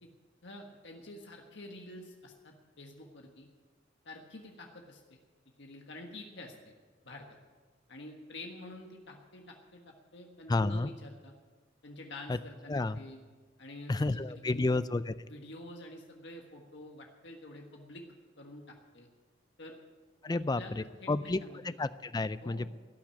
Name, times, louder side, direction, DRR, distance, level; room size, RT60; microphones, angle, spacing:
voice 1, 0.4-3.5 4.0-5.2 5.6-6.7 7.0-7.3 7.9-11.3 11.8-13.2 13.6-14.7 15.3-18.0 18.4-19.1 19.6-19.8 20.3-21.8 22.4-22.7, left 1 dB, 65° left, 2 dB, 1.5 m, -48 dB
voice 2, 10.5-10.9 12.3-12.4 12.7-13.0 13.9-15.1 20.2-21.4 21.6-22.7, left 2 dB, 20° left, 14 dB, 0.4 m, -31 dB
16.5 x 6.2 x 10.0 m, 1.4 s
head